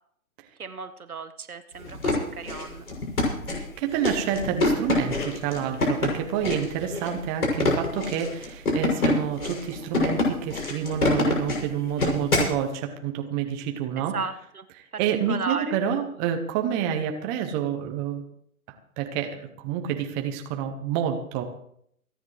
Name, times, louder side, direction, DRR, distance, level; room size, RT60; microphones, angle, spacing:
voice 1, 0.6-2.8 14.0-14.6 14.9-15.8, right 5 dB, 90° right, 9 dB, 1.6 m, -35 dB
sound 1, 1.8-12.6, left 2 dB, 90° left, 6.8 m, -26 dB
voice 2, 3.8-14.1 15.0-18.2 19.0-21.4, right 8 dB, 10° right, 4 dB, 0.4 m, -28 dB
28.5 x 9.9 x 3.2 m, 0.68 s
hypercardioid pair, 135°, 43 cm